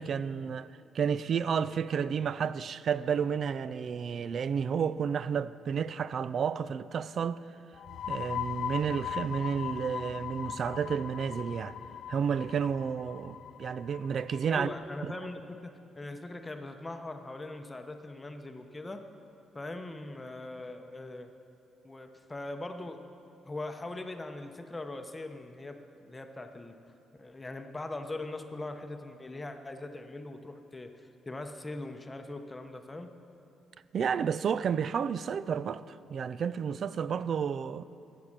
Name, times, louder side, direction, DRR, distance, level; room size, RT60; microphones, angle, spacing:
voice 1, 0.0-7.4 8.1-11.8 12.1-14.7 15.0-15.1 33.9-37.8, right 7 dB, 55° right, 0.4 m, -31 dB
sound 1, 7.7-15.2, left 9 dB, 65° left, 0.4 m, -39 dB
voice 2, 14.5-19.0 19.5-21.3 21.8-23.0 23.4-26.8 27.2-33.1, left 2 dB, 20° left, 0.8 m, -41 dB
13.0 x 8.4 x 6.6 m
cardioid pair, 90°, 0 cm